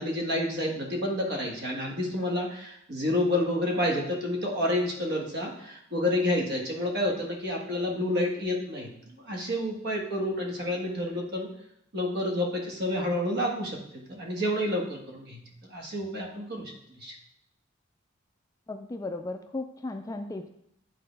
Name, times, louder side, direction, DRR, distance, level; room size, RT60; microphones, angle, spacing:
voice 1, 0.0-8.9 9.2-11.5 11.9-15.4 15.7-16.7 17.0-17.1, left 1 dB, 55° right, -1 dB, 1.6 m, -29 dB
voice 2, 18.7-20.5, left 2 dB, 15° left, 6 dB, 0.3 m, -35 dB
10.5 x 3.9 x 3.3 m, 0.74 s
head